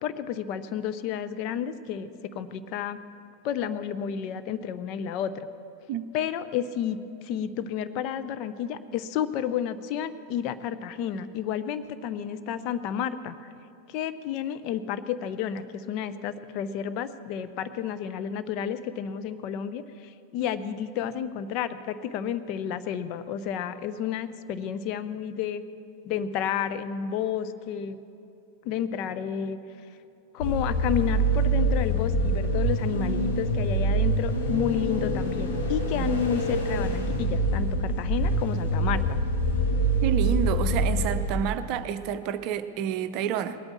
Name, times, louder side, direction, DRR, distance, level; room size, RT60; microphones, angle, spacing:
voice 1, 0.0-3.0 3.4-5.5 6.1-7.0 7.2-13.4 13.9-25.6 26.0-28.0 28.6-29.6 30.3-39.3, left 9 dB, 40° left, 11 dB, 0.6 m, -31 dB
sound 1, 30.4-41.6, right 1 dB, 65° left, 2.0 m, -25 dB
voice 2, 40.0-43.6, right 9 dB, 40° right, 12 dB, 0.6 m, -29 dB
19.5 x 8.8 x 7.3 m, 2.6 s
figure-of-eight pair, 90°, 0 cm